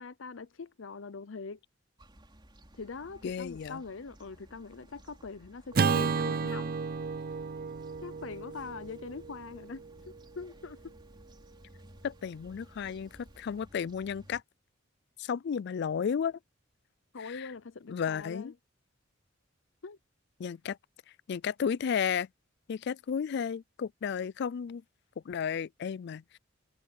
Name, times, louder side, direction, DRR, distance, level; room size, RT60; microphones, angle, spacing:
voice 1, 0.0-1.6 2.8-6.8 8.0-10.9 17.1-18.5 19.8-20.0, left 4 dB, 90° left, 0.7 m, -43 dB
sound 1, 2.0-14.4, right 1 dB, 25° right, 3.9 m, -56 dB
voice 2, 3.2-3.8 12.0-14.4 15.2-16.4 17.2-17.5 17.9-18.5 20.4-20.8 21.3-22.3 22.7-24.8 25.3-26.4, left 7 dB, 60° left, 0.4 m, -33 dB
Acoustic guitar / Strum, 5.7-10.2, right 5 dB, 50° right, 0.5 m, -32 dB
head